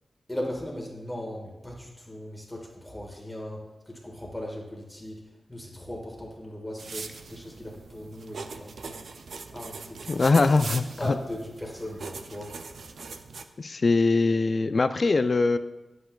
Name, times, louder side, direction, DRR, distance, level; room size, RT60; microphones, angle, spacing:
voice 1, 0.3-3.6 3.9-5.2 5.5-9.0 9.5-10.0 10.4-10.5 11.0-12.5, left 1 dB, 10° left, -1 dB, 1.6 m, -38 dB
sound 1, 6.8-13.4, right 4 dB, 75° right, 0.5 m, -41 dB
voice 2, 10.1-10.8 13.6-15.6, left 3 dB, 45° left, 11 dB, 0.4 m, -22 dB
10.0 x 7.9 x 2.3 m, 1.1 s
wide cardioid pair, 90°, 0 cm